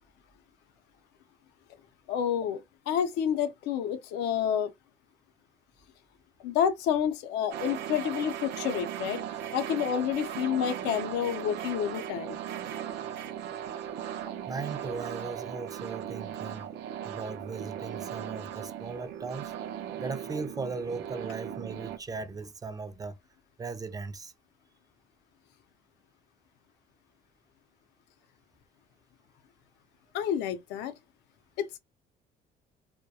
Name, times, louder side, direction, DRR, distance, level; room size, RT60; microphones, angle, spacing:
voice 1, 2.1-2.6 2.9-4.7 6.4-9.2 9.5-12.4 30.1-30.9 31.6-31.8, left 9 dB, 90° left, 0.5 m, -29 dB
sound 1, 7.5-22.0, right 10 dB, 80° right, 0.5 m, -38 dB
voice 2, 14.5-16.7 17.0-19.5 20.0-23.1 23.6-24.3, right 4 dB, 20° right, 0.3 m, -38 dB
2.2 x 2.1 x 2.7 m
cardioid pair, 110°, 17 cm